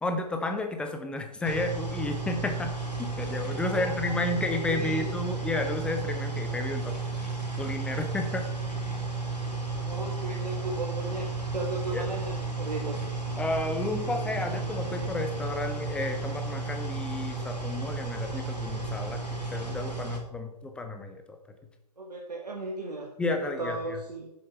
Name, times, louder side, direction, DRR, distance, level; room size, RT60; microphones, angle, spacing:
voice 1, 0.0-2.7 3.0-6.9 7.6-8.5 11.9-12.1 13.4-21.2 23.2-23.8, left 2 dB, 5° left, 5 dB, 0.5 m, -32 dB
sound 1, 1.4-20.2, right 3 dB, 90° left, 2.7 m, -33 dB
voice 2, 3.6-5.1 9.9-13.0 22.0-23.1 23.6-24.3, right 2 dB, 75° right, -1 dB, 1.4 m, -36 dB
7.2 x 6.5 x 4.5 m, 0.84 s
figure-of-eight pair, 120°, 21 cm